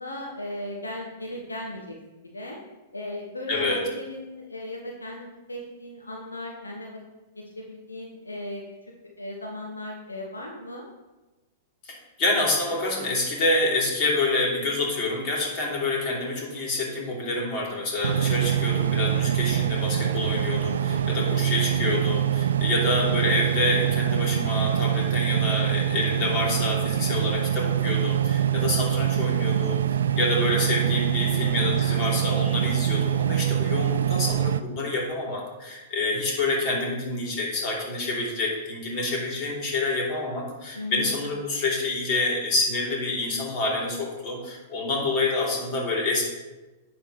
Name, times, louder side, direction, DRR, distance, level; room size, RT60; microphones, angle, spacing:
voice 1, 0.0-2.6 2.9-7.0 7.6-8.6 9.2-10.8 20.9-21.4 31.8-32.0 40.7-41.2, left 1 dB, 85° left, 0 dB, 1.1 m, -37 dB
voice 2, 3.5-3.8 11.8-46.2, left 2 dB, 40° left, -2 dB, 3.0 m, -27 dB
sound 1, 18.0-34.6, right 10 dB, 70° right, 0.4 m, -24 dB
10.0 x 7.5 x 3.1 m, 1.1 s
figure-of-eight pair, 100°, 0 cm